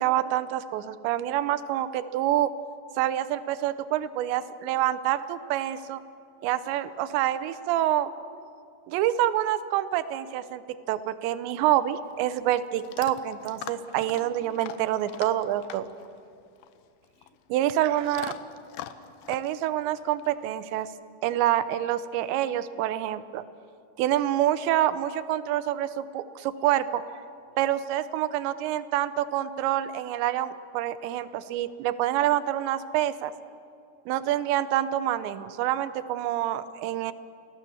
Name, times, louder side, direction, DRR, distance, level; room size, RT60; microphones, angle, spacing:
voice 1, 0.0-2.5 3.0-6.0 6.4-8.1 8.9-10.6 10.9-15.9 17.5-18.3 19.3-20.9 21.2-23.4 24.0-27.0 27.6-33.3 34.1-37.1, right 12 dB, 80° right, 14 dB, 3.0 m, -27 dB
Chewing mastication / Dog, 11.7-20.9, left 11 dB, 80° left, 2.1 m, -45 dB
28.5 x 18.0 x 7.1 m, 2.5 s
omnidirectional pair, 5.2 m